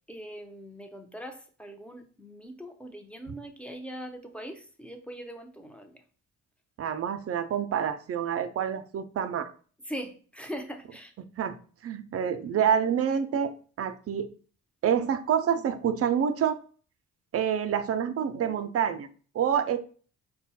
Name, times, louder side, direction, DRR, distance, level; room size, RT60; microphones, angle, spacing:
voice 1, 0.1-6.0 9.9-11.1, equal, 5° left, 0.7 m, -41 dB
voice 2, 6.8-9.5 11.4-11.6 11.8-13.5 13.8-14.3 14.8-16.6 17.3-19.1 19.3-19.8, right 8 dB, 50° right, 0.6 m, -27 dB
5.3 x 2.2 x 4.1 m
cardioid pair, 90°, 30 cm